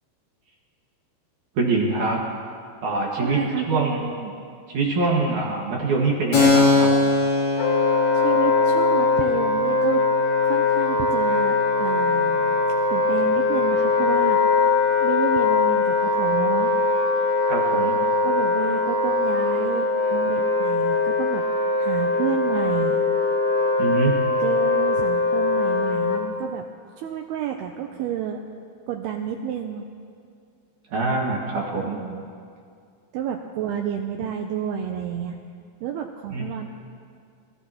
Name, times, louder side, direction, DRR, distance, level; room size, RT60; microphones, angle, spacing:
voice 1, 1.6-2.2 2.8-3.4 3.7-4.0 4.7-6.9 17.5-18.0 23.8-24.1 30.9-32.0 36.3-36.5, right 3 dB, 55° right, -3 dB, 2.5 m, -24 dB
voice 2, 3.2-4.3 8.2-10.0 10.4-12.6 12.9-14.4 15.0-16.7 18.2-21.5 21.8-23.0 24.4-26.7 27.0-28.4 28.9-29.8 31.8-32.2 33.1-35.4 35.8-36.7, right 9 dB, 90° right, 3 dB, 2.3 m, -30 dB
Keyboard (musical), 6.3-13.6, left 3 dB, 50° left, 5.5 m, -24 dB
Wind instrument woodwind instrument, 7.6-26.2, left 3 dB, 80° left, 1.6 m, -21 dB
25.5 x 14.5 x 2.9 m, 2.3 s
omnidirectional pair, 5.3 m